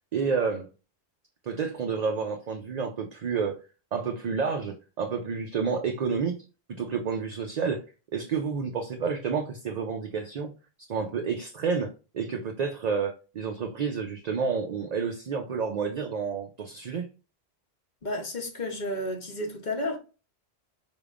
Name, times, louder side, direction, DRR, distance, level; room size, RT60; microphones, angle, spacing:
voice 1, 0.1-0.7 1.4-3.6 3.9-6.4 6.7-7.8 8.1-10.5 10.9-17.1, right 5 dB, 50° right, 0.5 m, -30 dB
voice 2, 18.0-20.0, left 1 dB, 45° left, 1.0 m, -32 dB
4.6 x 3.5 x 2.4 m
omnidirectional pair, 1.1 m